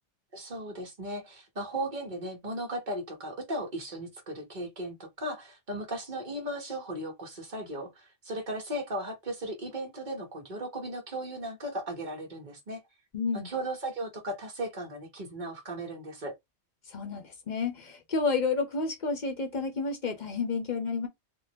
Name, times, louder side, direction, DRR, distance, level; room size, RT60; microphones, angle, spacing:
voice 1, 0.3-12.8 13.3-16.3, right 1 dB, 45° right, 1.2 m, -36 dB
voice 2, 13.1-13.5 16.9-21.1, left 4 dB, 45° left, 0.9 m, -30 dB
3.7 x 2.1 x 2.7 m
omnidirectional pair, 1.1 m